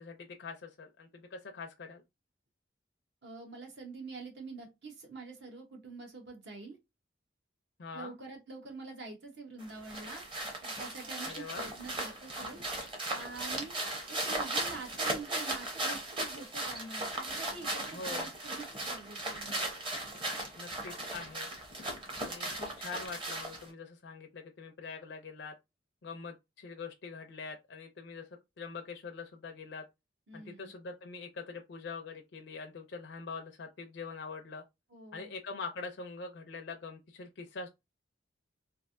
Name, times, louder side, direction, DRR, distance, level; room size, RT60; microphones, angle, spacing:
voice 1, 0.0-2.0 7.8-8.2 11.2-11.7 17.9-18.3 20.6-21.5 22.2-25.5 26.0-28.3 28.6-29.8 30.3-34.6 35.1-37.7, left 4 dB, 60° left, 0.5 m, -44 dB
voice 2, 3.2-6.8 7.9-13.8 14.1-19.6 30.3-30.7 34.9-35.3, right 3 dB, 60° right, 1.0 m, -46 dB
sound 1, 9.6-23.7, right 2 dB, 25° right, 0.8 m, -37 dB
3.2 x 2.5 x 2.5 m
head